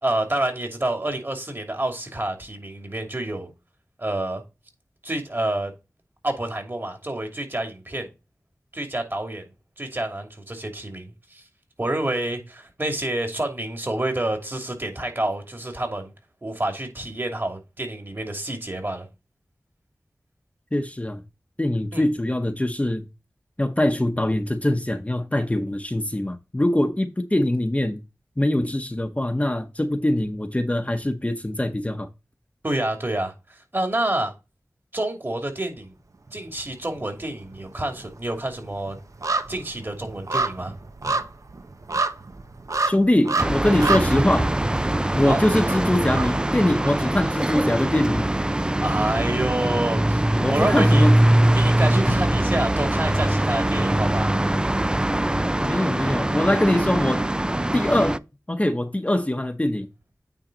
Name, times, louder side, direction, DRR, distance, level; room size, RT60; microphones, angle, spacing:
voice 1, 0.0-3.5 4.0-4.4 5.0-5.7 6.2-8.1 8.7-9.4 9.8-11.4 11.8-16.1 16.4-19.1 21.9-22.1 32.6-34.3 34.9-35.9 36.3-39.0 39.5-40.7 45.2-45.4 48.8-50.2 50.5-51.2 51.5-54.3, right 1 dB, 40° right, 2.7 m, -28 dB
voice 2, 20.7-21.2 21.6-23.0 23.6-28.0 28.4-32.1 42.9-44.5 45.1-48.3 50.4-51.2 55.6-57.3 57.7-58.2 58.5-59.9, left 1 dB, 20° left, 0.9 m, -23 dB
sound 1, 36.3-37.0 37.3-47.3 47.7-47.8, right 3 dB, 65° right, 0.8 m, -29 dB
sound 2, 43.4-58.2, right 1 dB, 15° right, 0.4 m, -22 dB
9.0 x 3.9 x 3.9 m
wide cardioid pair, 45°, 6 cm